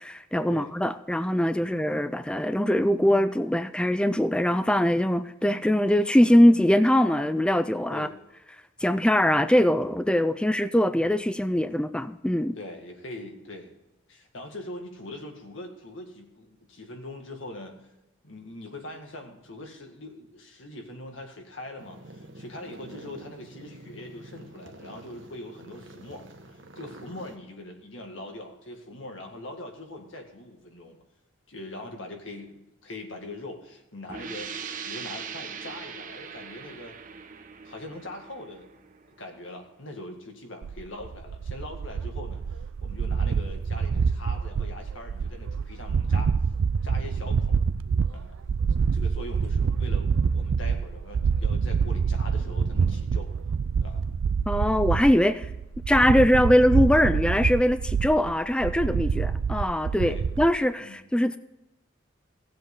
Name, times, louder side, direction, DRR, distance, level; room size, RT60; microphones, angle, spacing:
voice 1, 0.0-8.1 8.8-12.6 54.5-55.5 55.9-61.4, left 1 dB, 5° left, 0.4 m, -22 dB
voice 2, 12.6-13.8 14.1-17.8 18.2-31.0 31.5-36.9 37.6-38.7 39.2-42.4 42.8-46.3 46.8-47.6 48.1-48.4 48.9-53.3 53.8-54.0 60.0-60.3 60.8-61.0, left 1 dB, 70° left, 1.9 m, -42 dB
sound 1, 21.8-27.4, right 1 dB, 65° right, 1.1 m, -47 dB
sound 2, 34.1-39.6, right 6 dB, 40° right, 0.9 m, -40 dB
sound 3, 40.6-60.5, right 5 dB, 85° right, 0.4 m, -26 dB
17.0 x 7.6 x 3.7 m
head